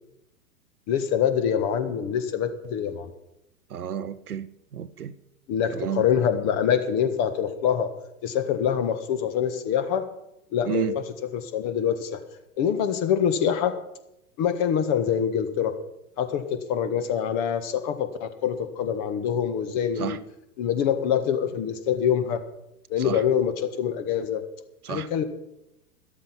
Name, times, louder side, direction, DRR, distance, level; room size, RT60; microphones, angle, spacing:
voice 1, 0.9-3.1 5.5-7.9 8.2-10.1 10.5-12.2 12.6-13.7 14.4-15.7 16.2-20.2 20.6-22.4 22.9-24.4 24.9-25.2, left 8 dB, 35° left, 1.6 m, -25 dB
voice 2, 3.7-4.5 4.7-5.1 5.7-6.0 10.7-10.9 20.0-20.2 23.0-23.2 24.8-25.1, right 9 dB, 75° right, 0.9 m, -31 dB
13.0 x 12.0 x 5.9 m
figure-of-eight pair, 105°, 45 cm